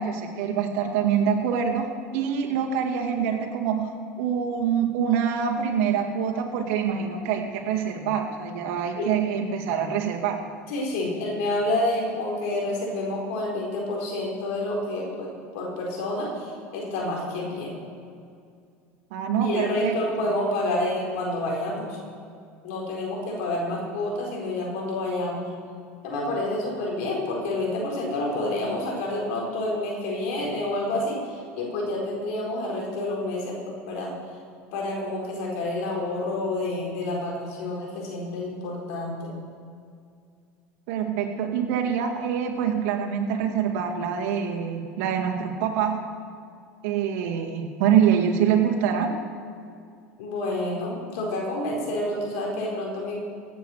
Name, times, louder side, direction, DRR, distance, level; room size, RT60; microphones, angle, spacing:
voice 1, 0.0-10.4 19.1-20.0 40.9-46.0 46.8-49.1, right 8 dB, 70° right, 2 dB, 2.1 m, -25 dB
voice 2, 10.7-17.7 19.4-22.0 22.6-25.4 26.0-34.1 34.7-39.3 50.2-53.2, left 1 dB, 75° left, -2 dB, 4.4 m, -29 dB
16.5 x 8.4 x 6.5 m, 2.3 s
hypercardioid pair, 95°, 7 cm